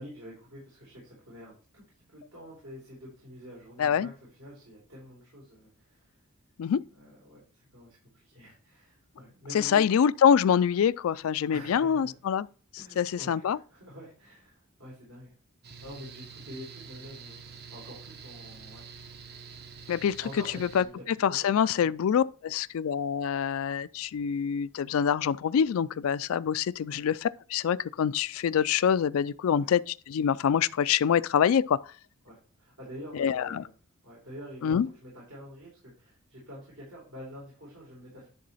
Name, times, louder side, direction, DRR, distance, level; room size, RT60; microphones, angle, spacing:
voice 1, 0.0-6.1 6.9-9.9 11.5-12.1 12.8-15.3 15.8-18.9 19.9-21.5 21.8-21.9 26.9-27.1 29.6-29.7 32.2-33.7 34.0-38.3, equal, 80° right, 3.8 m, -47 dB
voice 2, 3.8-4.1 6.6-6.8 9.5-12.5 13.0-13.6 19.9-20.2 20.7-20.8 21.2-31.8 33.1-33.6 34.6-34.9, left 8 dB, 70° left, 0.3 m, -25 dB
Mechanical fan, 15.6-20.9, right 5 dB, 45° right, 0.8 m, -47 dB
10.5 x 3.8 x 4.1 m
head